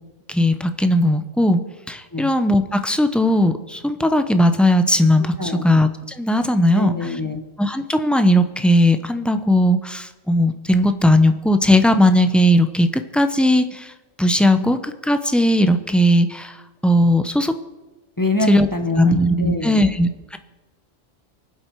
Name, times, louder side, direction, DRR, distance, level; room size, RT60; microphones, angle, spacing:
voice 1, 0.3-1.6 1.9-6.9 7.6-12.9 13.1-13.9 14.2-14.8 15.0-17.5 18.5-18.7 19.0-20.4, left 1 dB, ahead, 8 dB, 0.4 m, -17 dB
voice 2, 6.7-7.4 18.2-19.9, left 2 dB, 15° left, 5 dB, 0.9 m, -24 dB
24.0 x 8.0 x 4.6 m, 1.1 s
omnidirectional pair, 1.3 m